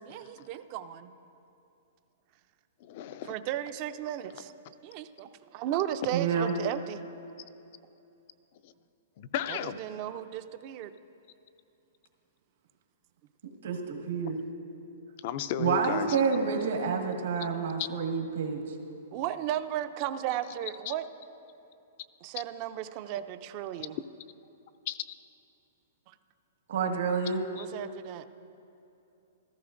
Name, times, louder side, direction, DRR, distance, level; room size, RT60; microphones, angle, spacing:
voice 1, 0.1-1.1 3.3-4.5 4.8-7.0 9.5-10.9 19.1-21.1 22.2-24.0 27.5-28.2, right 11 dB, 35° right, 11 dB, 0.4 m, -35 dB
voice 2, 2.8-3.3 8.6-8.7 9.2-9.8 15.2-16.2 17.8-17.9 20.9-21.0 24.9-25.0 27.6-27.7, left 11 dB, 45° left, 13 dB, 0.4 m, -34 dB
voice 3, 6.1-6.5 13.6-14.4 15.6-18.6 26.7-27.4, right 5 dB, 75° right, 1 dB, 1.6 m, -28 dB
14.5 x 14.0 x 2.6 m, 2.7 s
hypercardioid pair, 155°, 0 cm